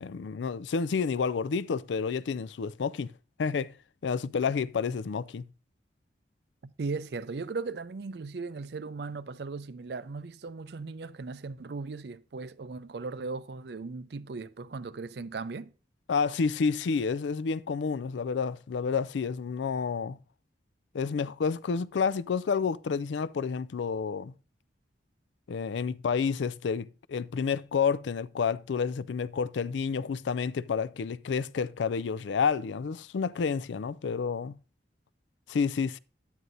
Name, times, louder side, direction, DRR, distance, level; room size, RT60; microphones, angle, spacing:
voice 1, 0.0-3.1 3.4-3.7 4.0-5.4 16.1-20.2 20.9-24.3 25.5-34.6 35.5-36.0, left 5 dB, 80° left, 0.4 m, -29 dB
voice 2, 6.6-15.7, right 4 dB, 65° right, 0.5 m, -37 dB
11.0 x 9.3 x 2.6 m
head